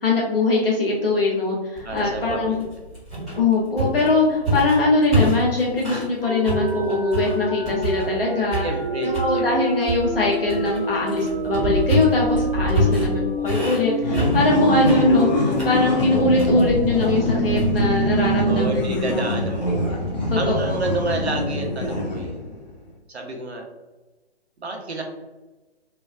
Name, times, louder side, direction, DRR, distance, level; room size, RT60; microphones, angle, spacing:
voice 1, 0.0-2.6 3.4-8.6 9.0-19.3 19.7-20.0 20.3-20.6, left 2 dB, 60° left, -3 dB, 1.1 m, -22 dB
sound 1, 1.8-6.1 6.4-8.2 8.5-9.3 9.8-20.3, equal, ahead, 0.8 m, -28 dB
voice 2, 1.8-2.7 8.6-9.5 12.8-13.1 18.4-19.8 20.4-22.6 23.1-23.6 24.6-25.0, right 3 dB, 75° right, 2 dB, 0.7 m, -29 dB
sound 2, 6.2-18.7 19.0-19.1 19.5-22.2, right 2 dB, 35° right, 0.4 m, -28 dB
sound 3, 14.0-22.6, left 2 dB, 40° left, 0.4 m, -24 dB
3.3 x 2.2 x 2.3 m, 1.1 s
figure-of-eight pair, 140°, 33 cm